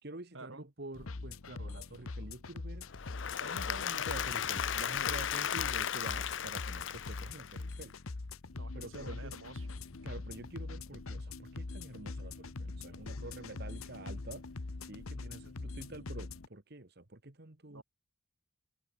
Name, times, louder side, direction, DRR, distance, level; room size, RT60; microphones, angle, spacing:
voice 1, 0.0-2.9 3.4-7.9 8.7-9.3 10.0-14.4 14.8-17.8, right 2 dB, 50° right, 1.6 m, -48 dB
sound 1, 0.9-16.5, left 3 dB, 85° left, 1.0 m, -43 dB
Applause / Crowd, 2.9-7.9, left 9 dB, 60° left, 0.6 m, -35 dB
voice 2, 8.5-9.8 17.7-17.8, right 3 dB, 70° right, 3.2 m, -51 dB
head